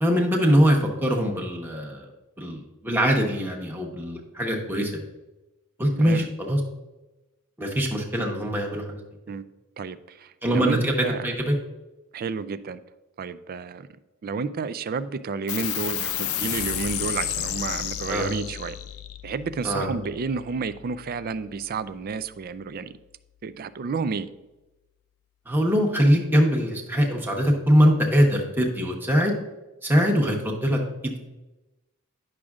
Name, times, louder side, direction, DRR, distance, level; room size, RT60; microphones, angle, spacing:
voice 1, 0.0-2.1 2.4-5.0 5.8-6.6 7.6-9.0 10.4-10.9 11.2-11.6 18.1-18.3 19.6-19.9 25.5-29.3 29.8-31.2, equal, 10° right, -1 dB, 1.0 m, -22 dB
voice 2, 5.9-6.3 9.3-9.5 9.8-11.3 12.1-12.8 13.2-13.9 14.2-18.8 19.2-22.9 23.4-24.3, right 5 dB, 45° right, 14 dB, 0.3 m, -31 dB
sound 1, 15.5-22.4, left 10 dB, 75° left, 0.5 m, -32 dB
10.0 x 6.2 x 2.4 m, 1.0 s
head